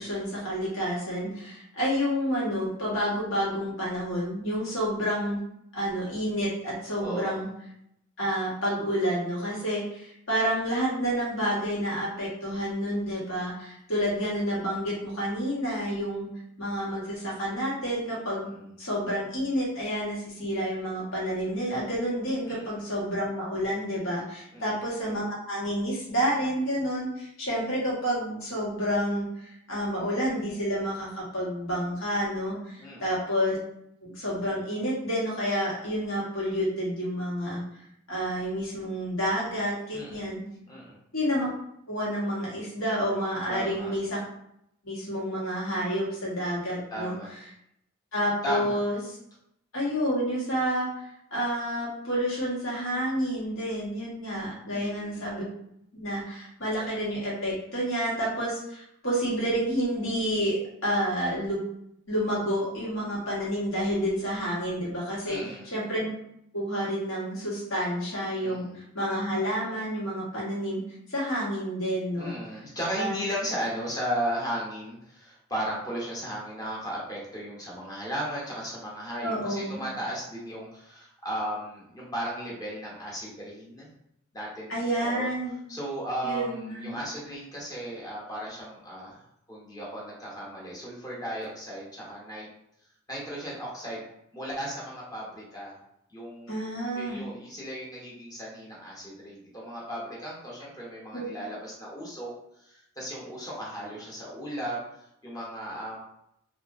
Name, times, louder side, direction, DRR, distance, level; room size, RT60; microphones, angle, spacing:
voice 1, 0.0-5.4 5.7-7.5 8.2-16.3 16.6-18.5 18.8-33.6 34.0-37.6 38.1-40.4 41.1-41.5 41.9-44.2 44.8-47.1 48.1-49.0 49.7-50.9 51.3-55.4 55.9-61.6 62.1-66.1 66.5-70.8 71.1-72.3 73.0-73.2 79.2-79.8 84.7-85.6 86.2-87.0 96.5-97.3 101.1-101.2, equal, 85° left, -6 dB, 1.2 m, -29 dB
voice 2, 7.0-7.4 18.4-18.6 22.4-22.8 24.5-24.7 32.8-33.2 39.9-40.3 40.7-41.0 43.5-43.9 46.9-47.3 48.4-48.8 54.7-55.2 65.3-65.7 68.4-68.8 72.1-83.9 84.3-85.3 85.7-89.2 89.5-92.5 93.1-94.0 94.3-95.8 96.1-102.3 102.6-106.0, equal, 20° left, -5 dB, 0.8 m, -36 dB
2.8 x 2.4 x 2.5 m, 0.75 s
head